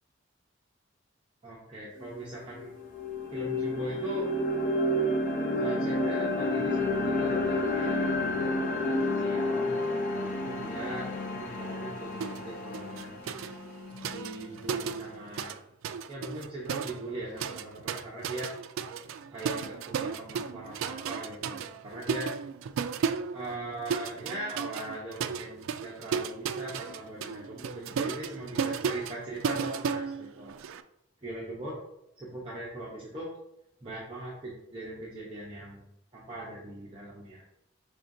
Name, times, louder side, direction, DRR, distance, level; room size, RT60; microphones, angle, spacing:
voice 1, 1.4-2.7 3.3-4.3 5.6-9.8 10.1-11.1 11.3-13.2 14.0-15.6 16.1-18.5 19.3-22.3 23.3-30.6 31.2-31.8 32.2-33.3 33.8-35.8 36.1-37.4, right 2 dB, 25° right, -6 dB, 0.8 m, -40 dB
sound 1, 2.0-2.1 2.5-14.6, left 1 dB, 40° left, 0.6 m, -30 dB
sound 2, 12.2-12.5 12.7-15.6 15.8-30.8, right 6 dB, 80° right, 0.3 m, -34 dB
5.6 x 3.5 x 2.6 m, 0.80 s
head